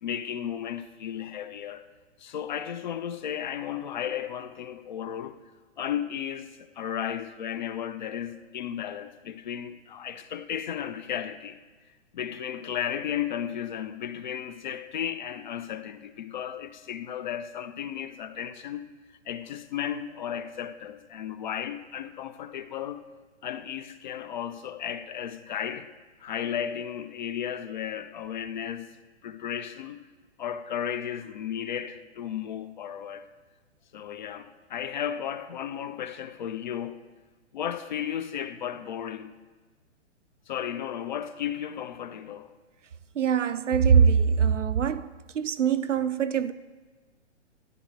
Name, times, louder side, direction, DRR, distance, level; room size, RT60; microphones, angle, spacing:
voice 1, 0.0-1.9 2.2-5.4 5.8-11.6 12.1-18.8 19.3-23.0 23.4-25.9 26.2-28.9 29.2-30.0 30.4-33.3 33.9-37.0 37.5-39.4 40.5-42.5, left 9 dB, 40° left, 0.4 m, -34 dB
voice 2, 43.2-45.1 45.3-46.5, right 7 dB, 85° right, 0.5 m, -22 dB
13.0 x 10.0 x 2.6 m
figure-of-eight pair, 120°, 36 cm